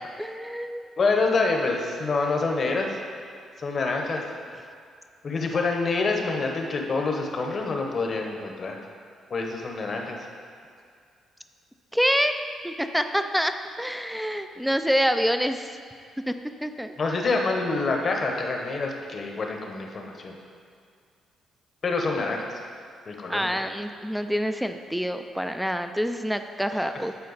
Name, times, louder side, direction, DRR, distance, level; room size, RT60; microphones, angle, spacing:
voice 1, 0.2-0.9 11.9-12.3 12.6-15.8 16.3-16.4 16.6-17.0 23.3-27.1, equal, ahead, 8 dB, 0.4 m, -26 dB
voice 2, 1.0-2.9 3.6-4.2 5.2-8.8 9.3-10.2 17.0-20.3 21.8-22.4 23.1-23.7, left 3 dB, 45° left, 2 dB, 0.9 m, -26 dB
9.5 x 4.3 x 4.1 m, 2.2 s
cardioid pair, 90°, 0 cm